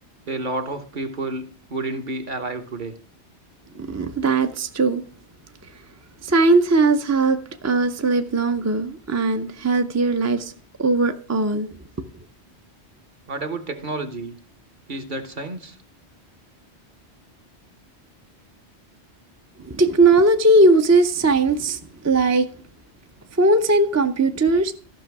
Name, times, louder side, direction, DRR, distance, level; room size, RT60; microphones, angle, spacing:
voice 1, 0.3-2.9 13.3-14.3 14.9-15.8, right 2 dB, 45° right, 1.2 m, -30 dB
voice 2, 3.7-5.0 6.2-10.5 10.8-11.7 19.6-22.5 23.4-24.7, right 2 dB, 20° right, 0.5 m, -19 dB
14.0 x 6.0 x 4.7 m
omnidirectional pair, 1.1 m